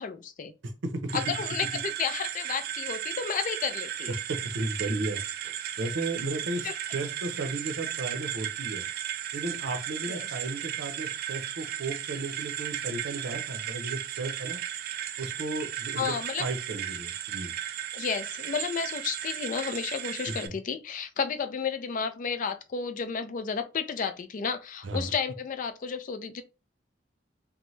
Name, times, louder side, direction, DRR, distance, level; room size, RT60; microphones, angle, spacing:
voice 1, 0.0-0.5 1.1-4.2 6.6-6.8 10.1-10.2 16.0-16.5 17.9-26.4, left 6 dB, 45° left, 0.3 m, -32 dB
voice 2, 0.6-1.2 4.3-8.9 9.3-14.6 15.2-17.5 20.3-20.6 24.8-25.1, right 2 dB, 85° right, 0.6 m, -34 dB
sound 1, 1.1-20.5, right 11 dB, 55° right, 0.3 m, -35 dB
2.7 x 2.1 x 3.1 m
head